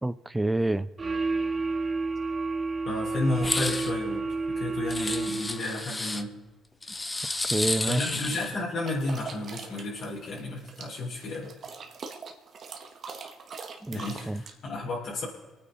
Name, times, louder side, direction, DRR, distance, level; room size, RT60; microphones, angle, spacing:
voice 1, 0.0-0.9 7.5-8.1 13.8-14.4, right 2 dB, 10° right, 15 dB, 0.5 m, -28 dB
sound 1, 1.0-5.8, right 3 dB, 35° right, 1.1 m, -30 dB
voice 2, 2.8-6.3 7.9-11.5 13.9-15.2, left 2 dB, 65° left, -6 dB, 4.5 m, -32 dB
sound 2, 3.4-3.9 4.9-6.2 6.8-8.6, left 2 dB, 15° left, 0.9 m, -31 dB
sound 3, 8.8-14.5, right 5 dB, 50° right, 1.9 m, -42 dB
25.5 x 9.6 x 4.2 m, 1.2 s
cardioid pair, 85°, 0 cm